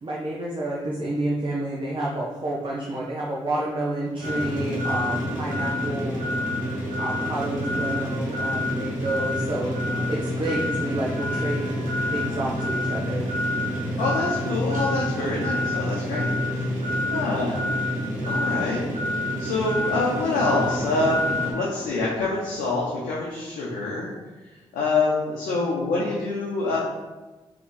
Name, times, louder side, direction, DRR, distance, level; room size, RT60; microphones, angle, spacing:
voice 1, 0.0-6.4 7.0-11.7 12.1-13.3, right 1 dB, 40° right, -4 dB, 0.8 m, -29 dB
sound 1, 4.2-21.5, left 1 dB, 70° right, 1.4 m, -27 dB
voice 2, 14.0-16.6 17.1-17.8 18.3-18.9 19.4-24.1 24.7-26.8, left 3 dB, 90° left, -5 dB, 0.6 m, -26 dB
3.6 x 3.0 x 3.9 m, 1.2 s
supercardioid pair, 40°, 13 cm